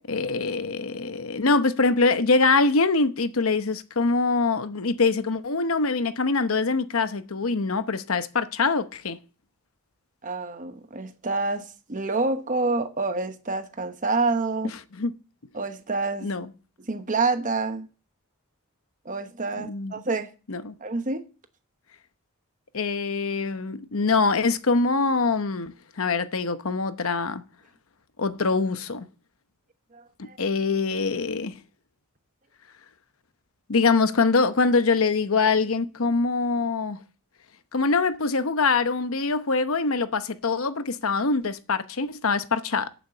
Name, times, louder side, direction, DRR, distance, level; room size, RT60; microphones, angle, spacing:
voice 1, 0.1-9.2 14.9-15.1 16.2-16.5 19.6-19.9 20.5-20.7 22.7-27.4 28.2-29.0 30.2-31.6 33.7-37.0 37.7-42.9, left 4 dB, 70° left, 0.9 m, -24 dB
voice 2, 10.2-14.7 15.5-16.3 16.8-17.9 19.0-20.3 20.8-21.3 29.9-30.4, right 3 dB, 35° right, 1.0 m, -27 dB
8.3 x 7.4 x 8.2 m
head